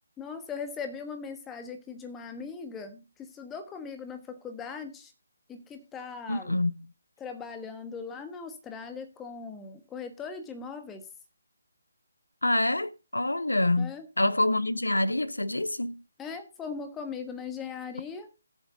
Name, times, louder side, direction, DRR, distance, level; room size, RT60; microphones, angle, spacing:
voice 1, 0.2-5.1 5.5-6.5 7.2-11.0 13.8-14.1 16.2-18.3, left 5 dB, 10° left, 1.3 m, -39 dB
voice 2, 6.3-6.9 12.4-16.0, left 1 dB, 80° left, 0.5 m, -27 dB
19.0 x 7.2 x 2.6 m
figure-of-eight pair, 145°, 0 cm